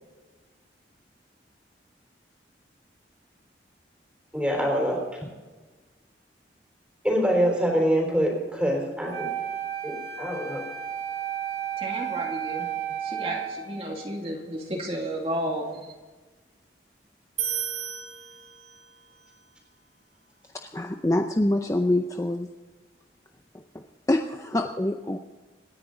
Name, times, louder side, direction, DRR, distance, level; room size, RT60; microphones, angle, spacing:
voice 1, 4.3-5.0 7.0-9.3 9.8-10.7, equal, 5° right, 0 dB, 3.8 m, -25 dB
Wind instrument woodwind instrument, 9.1-14.2, right 9 dB, 70° right, 2.1 m, -33 dB
voice 2, 11.8-12.7 13.0-16.0, right 1 dB, 35° right, 0 dB, 2.4 m, -32 dB
sound 1, 17.4-19.0, right 9 dB, 90° right, 3.2 m, -33 dB
voice 3, 20.7-22.5 23.7-23.8 24.1-25.2, left 1 dB, 15° left, 5 dB, 0.6 m, -25 dB
26.5 x 10.0 x 3.9 m, 1.3 s
head